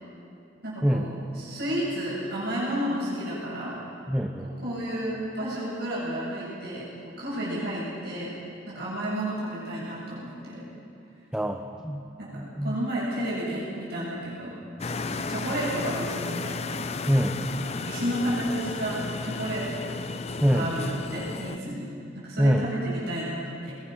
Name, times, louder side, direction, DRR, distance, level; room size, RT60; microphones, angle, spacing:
voice 1, 0.6-3.8 4.4-8.4 8.7-10.7 12.2-14.6 15.1-16.9 17.7-20.0 20.5-23.7, right 1 dB, 50° right, -7 dB, 7.6 m, -32 dB
voice 2, 4.1-4.5 11.3-12.1 12.3-12.8 17.1-17.4 20.4-20.7 22.4-22.7, equal, 5° right, 3 dB, 0.8 m, -24 dB
sound 1, 14.8-21.6, left 3 dB, 30° left, 0.5 m, -33 dB
22.5 x 21.5 x 6.3 m, 2.7 s
head